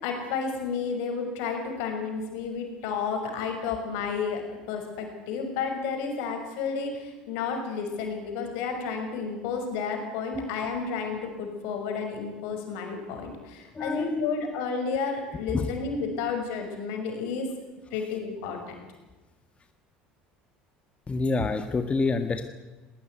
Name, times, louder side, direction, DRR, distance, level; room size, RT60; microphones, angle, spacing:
voice 1, 0.0-17.5 17.9-18.6, left 5 dB, 70° left, 4 dB, 6.0 m, -31 dB
voice 2, 13.7-14.3 15.5-15.7 21.1-22.5, left 3 dB, 25° left, 8 dB, 1.7 m, -27 dB
19.5 x 18.5 x 9.4 m, 1.2 s
hypercardioid pair, 70°, 5 cm